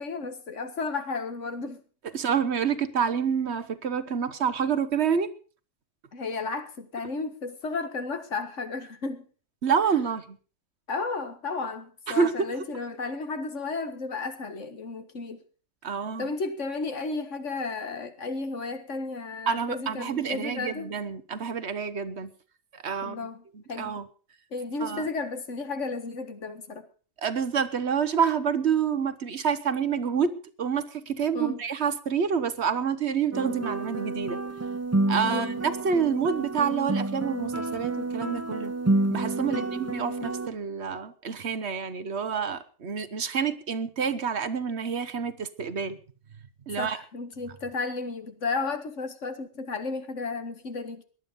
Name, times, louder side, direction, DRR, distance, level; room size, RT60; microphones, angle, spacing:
voice 1, 0.0-1.8 6.1-9.3 10.9-15.4 16.2-20.9 23.0-24.0 24.5-26.9 31.3-31.6 35.3-35.5 39.5-39.7 46.8-51.0, left 3 dB, 80° left, 2.0 m, -33 dB
voice 2, 2.1-5.3 9.6-10.4 12.1-12.3 15.8-16.3 19.5-22.3 22.7-23.2 23.8-24.1 24.8-25.0 27.2-34.4 35.1-38.7 39.1-46.0 46.7-47.0, right 6 dB, 65° right, 1.3 m, -28 dB
sound 1, 33.3-40.5, right 2 dB, 15° right, 0.6 m, -29 dB
18.0 x 11.5 x 5.3 m
omnidirectional pair, 1.2 m